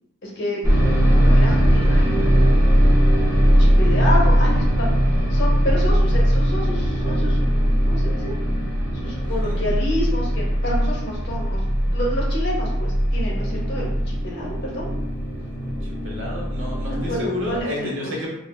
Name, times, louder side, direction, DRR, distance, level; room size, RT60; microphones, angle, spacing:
voice 1, 0.2-0.6 1.2-2.5 3.6-4.9 5.3-8.3 8.9-14.9 16.8-18.1, left 1 dB, 55° left, -3 dB, 0.7 m, -29 dB
sound 1, 0.6-17.6, equal, 15° right, 0.5 m, -19 dB
voice 2, 15.8-18.3, left 1 dB, 65° right, -3 dB, 0.8 m, -30 dB
3.2 x 2.3 x 2.3 m, 0.88 s
head